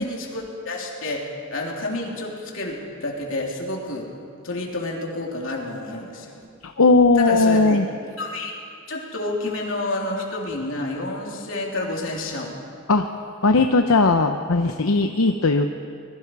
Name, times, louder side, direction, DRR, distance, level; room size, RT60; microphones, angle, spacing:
voice 1, 0.0-4.1 4.4-6.5 7.2-7.8 8.2-8.6 8.9-12.6, left 2 dB, 65° left, -1 dB, 3.6 m, -29 dB
voice 2, 6.6-7.9 12.9-13.1 13.4-15.7, left 3 dB, 85° left, 6 dB, 0.8 m, -18 dB
25.0 x 21.5 x 4.8 m, 2.4 s
head